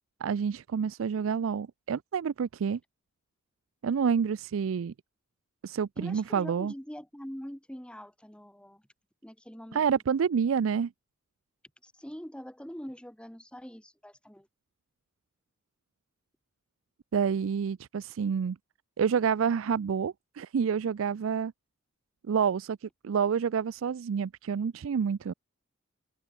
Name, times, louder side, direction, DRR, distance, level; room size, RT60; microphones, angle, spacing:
voice 1, 0.2-2.8 3.8-4.9 5.6-6.7 9.7-10.9 17.1-18.6 19.0-21.5 22.3-25.3, right 6 dB, 75° right, 0.4 m, -28 dB
voice 2, 6.0-8.8 9.2-9.9 11.8-14.5, equal, 5° left, 2.0 m, -44 dB
head